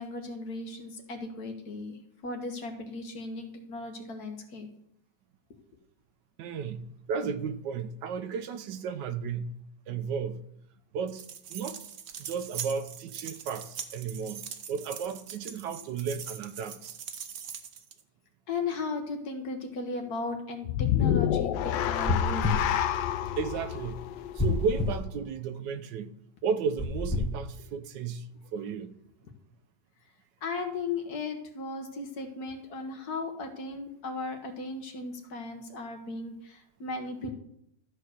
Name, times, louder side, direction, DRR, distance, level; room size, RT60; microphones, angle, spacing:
voice 1, 0.0-2.0 2.2-4.7 18.5-22.7 30.4-37.3, left 3 dB, 60° left, 1.6 m, -36 dB
voice 2, 6.4-9.5 9.9-10.4 10.9-11.8 12.2-14.4 14.7-17.0 23.4-24.0 24.4-26.1 26.4-28.3 28.5-29.0, right 6 dB, 75° right, 1.3 m, -34 dB
sound 1, 11.1-18.0, right 8 dB, 60° right, 1.0 m, -42 dB
sound 2, 20.6-25.0, left 11 dB, 85° left, 1.4 m, -29 dB
sound 3, 22.1-22.7 24.4-25.0 26.8-27.3, left 3 dB, 10° left, 0.9 m, -27 dB
13.0 x 4.6 x 6.4 m
omnidirectional pair, 2.0 m